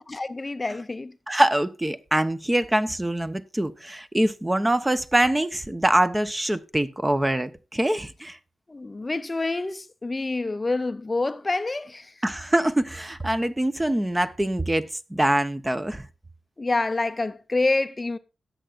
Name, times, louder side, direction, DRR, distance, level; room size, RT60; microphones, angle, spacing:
voice 1, 0.1-1.1 8.7-12.2 16.6-18.2, left 2 dB, 30° left, 0.5 m, -27 dB
voice 2, 1.3-8.4 12.2-16.1, right 1 dB, 15° right, 0.8 m, -24 dB
17.0 x 7.8 x 2.5 m
cardioid pair, 70°, 0 cm